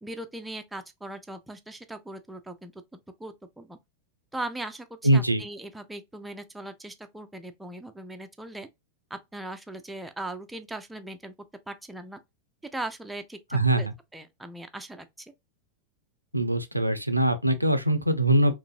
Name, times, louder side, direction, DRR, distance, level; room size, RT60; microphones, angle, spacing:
voice 1, 0.0-3.8 4.3-8.7 9.1-11.3 11.7-12.2 12.7-13.9 14.1-15.3, right 1 dB, 5° right, 0.5 m, -39 dB
voice 2, 5.0-5.4 13.5-13.9 16.3-18.5, right 1 dB, 90° right, 0.5 m, -22 dB
3.9 x 2.6 x 2.4 m
figure-of-eight pair, 90°, 0 cm